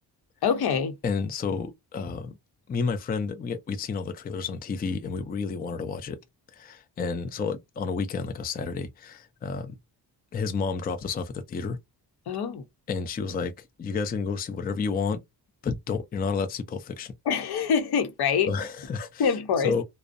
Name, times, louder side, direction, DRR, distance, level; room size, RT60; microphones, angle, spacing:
voice 1, 0.4-0.9 12.3-12.6 17.3-18.5 19.2-19.7, left 6 dB, 70° left, 0.7 m, -25 dB
voice 2, 1.0-2.4 2.7-6.2 6.5-9.8 10.3-11.8 12.9-13.5 13.8-15.2 15.6-17.1 18.5-19.3 19.6-19.8, left 5 dB, 25° left, 0.4 m, -30 dB
2.5 x 2.0 x 2.4 m
wide cardioid pair, 135°, 40 cm